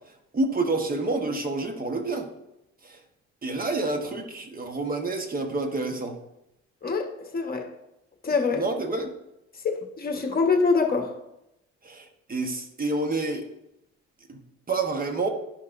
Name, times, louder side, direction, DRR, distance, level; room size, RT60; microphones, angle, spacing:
voice 1, 0.3-2.3 2.8-3.0 3.4-6.2 8.5-9.1 11.8-13.5 14.3-14.4 14.7-15.3, right 2 dB, 30° right, 5 dB, 1.2 m, -28 dB
voice 2, 7.3-7.7 8.2-8.6 9.6-11.1, left 4 dB, 30° left, 3 dB, 1.3 m, -24 dB
11.5 x 5.4 x 2.6 m, 0.88 s
cardioid pair, 90°, 30 cm